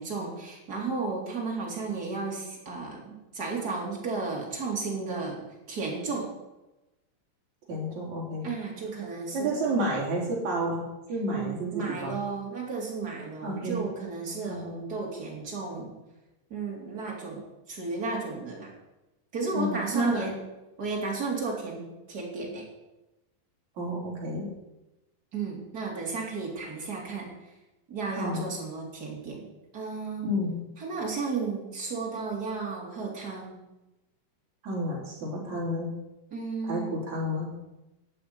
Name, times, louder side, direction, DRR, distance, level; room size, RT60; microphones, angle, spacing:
voice 1, 0.0-5.4 5.7-6.3 8.4-9.8 11.3-15.9 16.5-18.7 19.3-20.3 20.8-22.6 25.3-27.3 27.9-29.4 29.7-30.2 30.8-33.5 36.3-37.0, right 4 dB, 20° right, -2 dB, 3.4 m, -33 dB
voice 2, 7.7-8.5 9.3-12.2 13.4-13.8 14.5-14.7 19.5-20.3 23.8-24.4 28.1-28.5 30.2-30.6 34.6-35.9 36.6-37.5, equal, 35° right, -3 dB, 4.9 m, -30 dB
13.5 x 7.5 x 9.8 m, 1.0 s
omnidirectional pair, 5.9 m